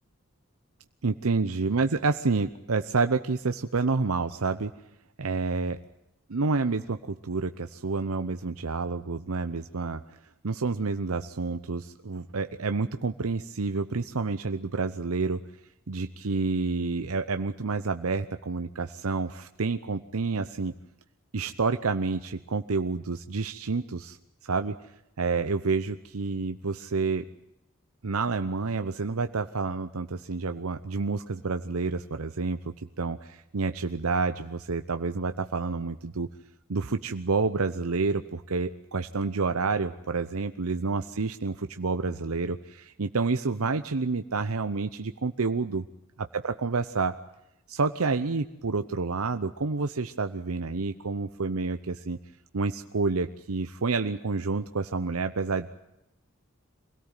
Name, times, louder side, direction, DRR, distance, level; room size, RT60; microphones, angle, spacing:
voice 1, 1.0-4.7 5.2-5.8 6.3-10.0 10.4-15.4 15.9-20.7 21.3-24.2 24.4-24.8 25.2-27.2 28.0-36.3 36.7-45.9 46.2-47.2 47.7-52.2 52.5-55.8, right 4 dB, 85° right, 9 dB, 0.8 m, -29 dB
24.0 x 17.5 x 9.0 m, 0.88 s
head